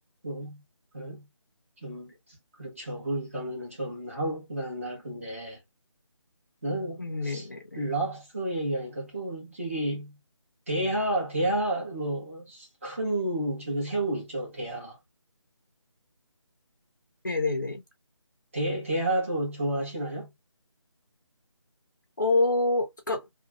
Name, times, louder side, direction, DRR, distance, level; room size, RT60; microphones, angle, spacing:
voice 1, 0.2-0.6 0.9-1.3 1.8-2.1 2.6-5.6 6.6-7.5 7.7-10.2 10.7-15.0 18.5-20.3, right 1 dB, 25° right, 1.4 m, -31 dB
voice 2, 7.0-7.6 17.2-17.8 22.2-23.3, left 2 dB, 35° left, 0.8 m, -26 dB
3.0 x 2.3 x 2.3 m
figure-of-eight pair, 180°, 16 cm